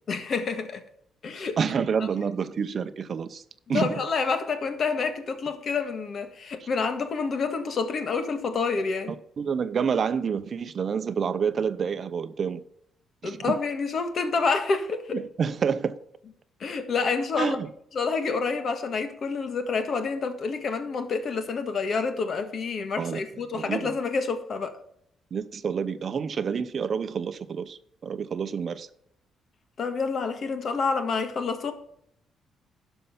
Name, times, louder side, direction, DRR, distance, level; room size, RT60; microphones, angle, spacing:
voice 1, 0.1-0.8 1.2-1.6 3.7-9.1 13.2-15.2 16.6-17.6 17.9-24.8 29.8-31.7, left 4 dB, 50° left, 1.5 m, -28 dB
voice 2, 1.6-3.4 3.7-3.9 6.6-6.7 9.1-12.6 13.2-13.5 15.1-16.0 17.4-17.7 23.0-23.2 23.5-23.9 25.3-28.9, right 6 dB, 50° right, 0.7 m, -28 dB
11.5 x 5.5 x 5.6 m
cardioid pair, 90°, 0 cm